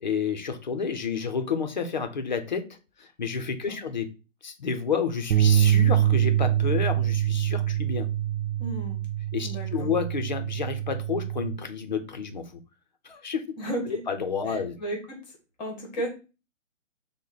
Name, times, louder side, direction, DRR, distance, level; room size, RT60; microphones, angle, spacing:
voice 1, 0.0-4.1 4.4-8.1 9.3-12.6 13.0-13.6 13.9-14.8, left 6 dB, 35° left, 7 dB, 0.5 m, -30 dB
sound 1, 5.3-11.6, right 11 dB, 75° right, 0.7 m, -24 dB
voice 2, 8.6-9.0 9.4-9.9 13.6-14.0 14.5-15.2 15.6-16.1, right 1 dB, 5° left, 1 dB, 0.8 m, -34 dB
6.3 x 2.1 x 3.9 m, 0.31 s
hypercardioid pair, 170°, 38 cm